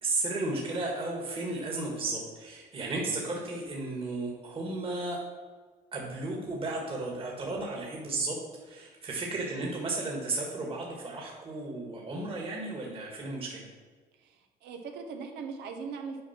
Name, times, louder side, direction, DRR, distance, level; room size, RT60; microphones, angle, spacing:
voice 1, 0.0-5.2 5.9-13.7, right 2 dB, 30° right, -2 dB, 1.7 m, -34 dB
voice 2, 14.2-16.2, right 5 dB, 85° right, 4 dB, 1.1 m, -40 dB
8.6 x 4.7 x 5.9 m, 1.5 s
cardioid pair, 110°, 17 cm